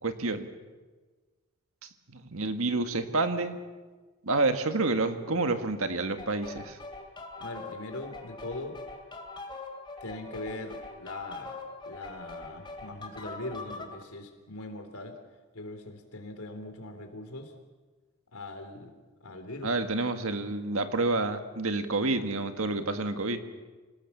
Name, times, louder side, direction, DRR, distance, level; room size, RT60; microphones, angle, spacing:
voice 1, 0.0-0.5 1.8-3.6 4.2-6.8 19.6-23.4, right 2 dB, 70° right, 7 dB, 1.8 m, -29 dB
sound 1, 6.2-14.0, left 3 dB, 20° left, 2.8 m, -42 dB
voice 2, 7.4-8.8 10.0-11.6 11.9-15.1 15.5-17.5 18.3-18.9 19.2-19.7, left 2 dB, 80° left, 6 dB, 3.6 m, -41 dB
26.5 x 18.5 x 7.2 m, 1.3 s
head